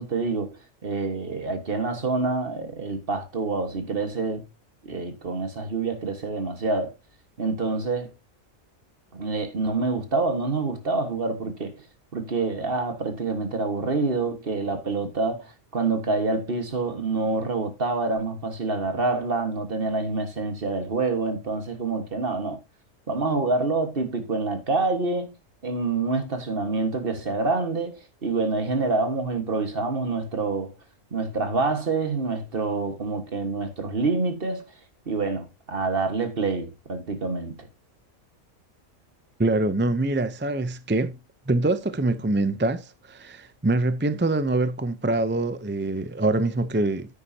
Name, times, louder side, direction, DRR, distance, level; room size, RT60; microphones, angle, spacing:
voice 1, 0.0-4.5 4.8-6.9 7.4-8.1 9.1-11.8 12.1-22.6 23.1-25.3 25.6-30.7 31.1-34.7 35.1-37.7, right 3 dB, 45° right, 1.7 m, -27 dB
voice 2, 39.4-41.2 41.5-47.2, right 2 dB, 20° right, 0.3 m, -24 dB
9.6 x 9.3 x 2.8 m
omnidirectional pair, 1.4 m